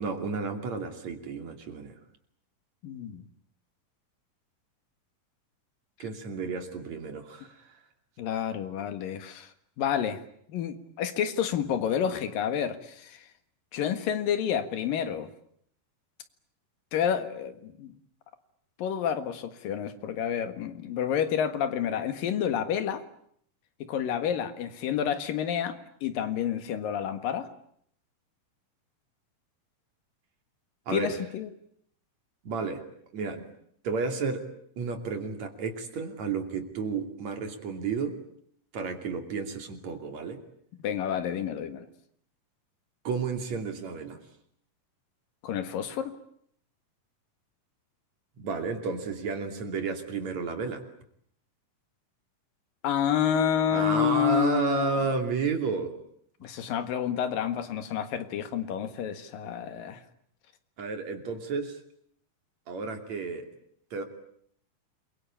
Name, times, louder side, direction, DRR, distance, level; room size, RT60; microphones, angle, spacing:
voice 1, 0.0-2.0 6.0-7.8 30.9-31.1 32.4-32.8 33.1-33.5 33.8-34.4 34.8-38.2 38.7-40.4 43.0-44.2 48.4-50.8 53.7-55.9 60.8-61.8 62.7-63.5 63.9-64.0, right 4 dB, 55° right, 6 dB, 4.0 m, -32 dB
voice 2, 2.8-3.2 8.2-9.5 9.8-10.2 10.5-13.2 13.7-15.3 16.9-17.9 18.8-23.0 23.8-27.5 30.9-31.5 40.8-41.9 45.4-46.2 52.8-55.0 56.4-60.0, left 9 dB, 90° left, 10 dB, 3.5 m, -29 dB
28.0 x 23.0 x 8.7 m, 0.68 s
omnidirectional pair, 3.8 m